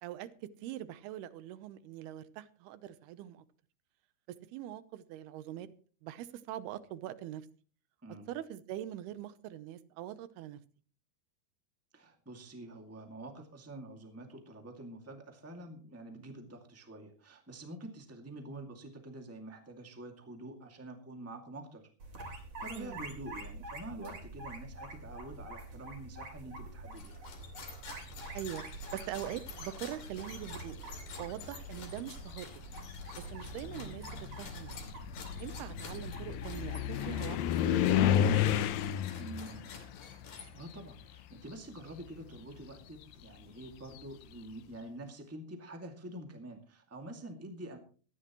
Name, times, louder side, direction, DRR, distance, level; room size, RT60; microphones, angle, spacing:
voice 1, 0.0-3.4 4.3-5.7 6.0-7.5 8.3-10.6 22.7-23.0 28.3-28.6 28.9-30.8 31.2-32.5 33.2-34.8 35.4-38.7, right 12 dB, 75° right, 14 dB, 2.7 m, -43 dB
voice 2, 11.9-21.8 22.2-27.2 39.2-39.7 40.4-47.8, right 1 dB, 10° right, 3 dB, 0.8 m, -47 dB
sound 1, 22.0-38.8, right 2 dB, 40° right, 4.0 m, -47 dB
sound 2, 26.9-40.9, left 4 dB, 55° left, 3.8 m, -50 dB
sound 3, 29.3-29.9 30.9-31.0 31.5-41.5 41.7-44.4, left 10 dB, 75° left, 2.2 m, -33 dB
18.5 x 14.5 x 3.1 m, 0.41 s
omnidirectional pair, 4.8 m